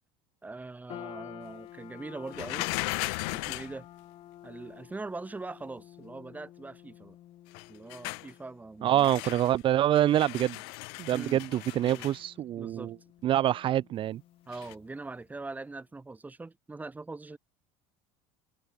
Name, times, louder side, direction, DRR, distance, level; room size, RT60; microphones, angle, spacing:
voice 1, 0.4-2.7 3.3-3.9 4.4-7.2 7.7-9.3 11.1-11.4 11.8-12.1 12.6-12.9 14.5-17.4, right 3 dB, 10° right, 7.7 m, -42 dB
sound 1, 0.9-15.3, left 13 dB, 45° left, 2.7 m, -51 dB
sound 2, 2.3-3.8 7.5-8.3 9.0-9.6 9.9-12.2 14.5-14.7, left 34 dB, 80° left, 1.9 m, -36 dB
voice 2, 8.8-10.6 11.0-12.9 13.2-14.2, right 12 dB, 40° right, 0.9 m, -26 dB
open air
supercardioid pair, 125°, 13 cm